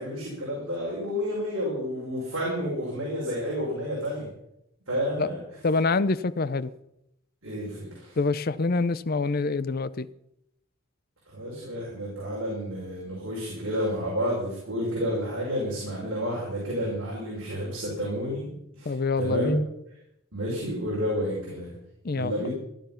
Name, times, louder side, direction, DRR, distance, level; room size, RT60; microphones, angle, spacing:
voice 1, 0.0-4.3 4.9-5.4 7.4-8.2 11.3-19.6 20.3-21.8 22.1-22.5, equal, 60° right, 5.4 m, -30 dB
voice 2, 5.6-6.7 8.2-10.1 18.9-19.6 22.0-22.5, left 3 dB, 45° left, 0.6 m, -26 dB
16.0 x 11.5 x 5.7 m
head